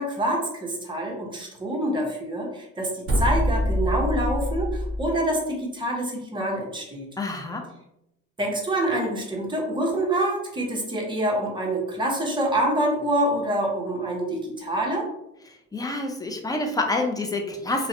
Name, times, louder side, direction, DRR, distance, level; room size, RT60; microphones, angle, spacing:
voice 1, 0.0-7.1 8.4-15.1, right 1 dB, 15° right, -1 dB, 0.7 m, -26 dB
sound 1, 3.0-5.1, equal, 50° right, 0.6 m, -24 dB
voice 2, 7.2-7.7 15.4-17.9, left 2 dB, 15° left, 3 dB, 0.4 m, -28 dB
2.5 x 2.1 x 2.5 m, 0.84 s
cardioid pair, 90°, 30 cm